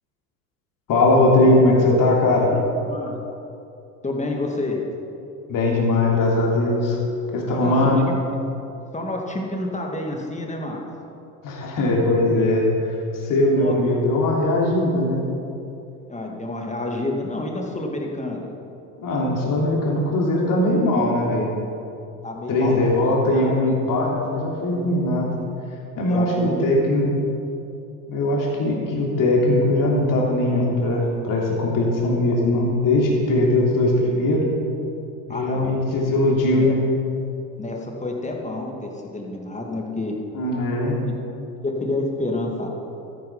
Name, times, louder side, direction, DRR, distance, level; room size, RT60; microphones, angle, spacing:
voice 1, 0.9-2.5 5.5-7.0 7.3-8.0 11.4-12.9 13.2-15.3 19.0-21.5 22.5-25.3 26.0-27.1 28.1-34.4 35.3-36.8 40.3-41.0, left 1 dB, 45° left, -2 dB, 3.2 m, -20 dB
voice 2, 4.0-4.9 7.5-7.8 8.1-8.2 8.9-10.8 13.4-13.8 16.1-18.4 22.2-23.6 26.1-27.0 35.3-36.1 36.5-36.7 37.6-40.1 41.6-42.7, left 2 dB, 15° left, 1 dB, 2.4 m, -29 dB
13.0 x 11.5 x 5.6 m, 2.8 s
hypercardioid pair, 70°, 47 cm